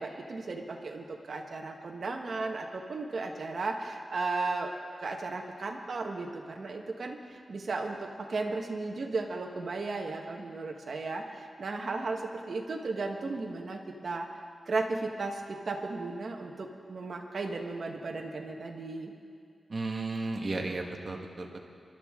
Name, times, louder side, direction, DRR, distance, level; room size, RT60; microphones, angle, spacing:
voice 1, 0.0-4.7 5.0-14.3 14.7-19.1, right 3 dB, 55° right, 2 dB, 1.3 m, -35 dB
voice 2, 19.7-21.7, right 3 dB, 40° right, 1 dB, 1.5 m, -34 dB
25.5 x 12.0 x 3.7 m, 2.2 s
wide cardioid pair, 140°, 0 cm